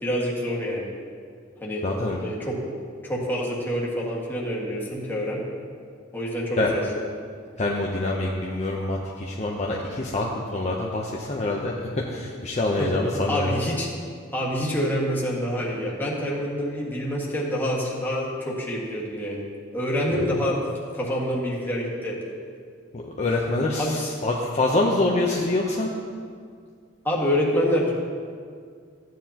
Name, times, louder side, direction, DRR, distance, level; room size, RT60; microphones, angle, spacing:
voice 1, 0.0-0.9 1.6-1.8 2.2-2.6 3.0-5.4 6.1-6.8 12.8-12.9 13.3-13.9 14.3-19.4 19.7-20.6 20.9-22.2 23.8-24.1 27.0-27.9, equal, 10° left, -5 dB, 1.8 m, -26 dB
voice 2, 1.8-2.2 6.6-6.7 7.6-13.5 20.1-20.2 22.9-25.9, left 2 dB, 35° left, -2 dB, 0.8 m, -25 dB
14.5 x 9.4 x 2.9 m, 2.1 s
head